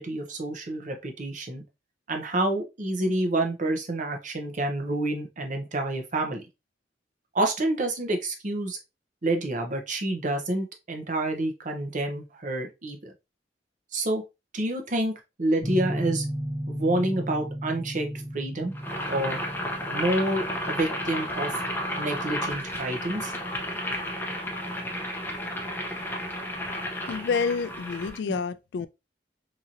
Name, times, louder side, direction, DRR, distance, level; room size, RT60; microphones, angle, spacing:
voice 1, 0.0-1.6 2.1-6.4 7.3-8.8 9.2-13.1 13.9-14.2 14.5-16.2 16.7-18.7 19.0-19.4 19.9-21.5 22.0-23.3 28.3-28.4, right 1 dB, 45° right, 0.7 m, -28 dB
sound 1, 15.6-24.3, equal, 10° right, 1.0 m, -36 dB
Boiling, 18.8-28.2, left 1 dB, 10° left, 0.6 m, -32 dB
voice 2, 27.1-28.9, left 5 dB, 70° left, 0.3 m, -28 dB
3.0 x 2.7 x 2.4 m
head